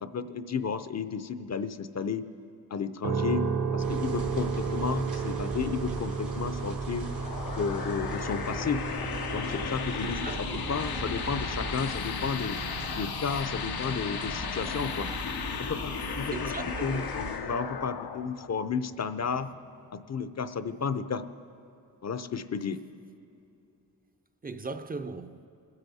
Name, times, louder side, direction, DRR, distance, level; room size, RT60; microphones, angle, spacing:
voice 1, 0.0-2.3 2.7-3.5 3.7-7.1 7.6-8.8 9.3-12.6 12.9-15.1 15.6-16.5 16.8-19.5 19.9-21.2 22.0-22.8, left 6 dB, 45° left, 0.6 m, -32 dB
sound 1, 3.0-17.0, right 5 dB, 60° right, 0.9 m, -35 dB
sound 2, 3.8-17.4, right 2 dB, 80° right, 3.6 m, -40 dB
sound 3, 6.9-20.0, left 7 dB, 85° left, 0.7 m, -36 dB
voice 2, 10.0-10.6 16.3-17.1 24.4-25.4, right 3 dB, 25° right, 0.5 m, -38 dB
22.5 x 8.1 x 4.1 m
cardioid pair, 65°, 37 cm